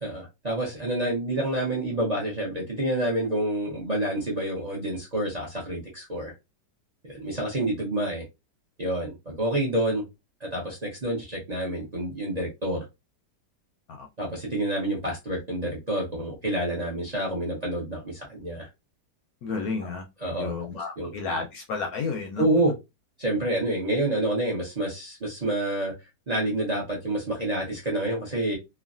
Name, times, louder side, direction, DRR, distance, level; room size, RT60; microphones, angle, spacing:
voice 1, 0.0-6.3 7.0-8.2 8.8-10.0 10.4-12.8 14.2-18.7 20.2-20.5 21.0-21.1 22.4-22.7 23.2-25.9 26.3-28.6, right 1 dB, 35° right, 0.7 m, -28 dB
voice 2, 19.4-22.4, left 4 dB, 70° left, 0.9 m, -32 dB
3.0 x 2.3 x 2.4 m
omnidirectional pair, 1.8 m